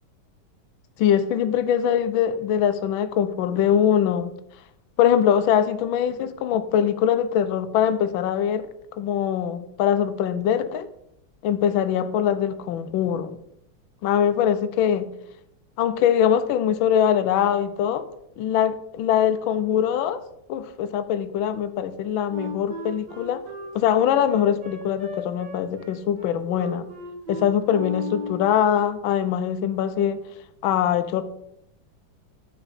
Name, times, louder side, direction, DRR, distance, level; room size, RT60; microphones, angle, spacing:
voice 1, 1.0-4.3 5.0-8.7 9.0-10.9 11.4-13.4 14.0-15.1 15.8-18.1 18.4-20.2 20.5-23.4 23.7-26.9 27.3-30.2 30.6-31.2, left 9 dB, 85° left, 1.4 m, -22 dB
Wind instrument woodwind instrument, 22.3-28.6, left 1 dB, 55° right, 3.0 m, -36 dB
8.7 x 6.1 x 4.1 m
omnidirectional pair, 2.1 m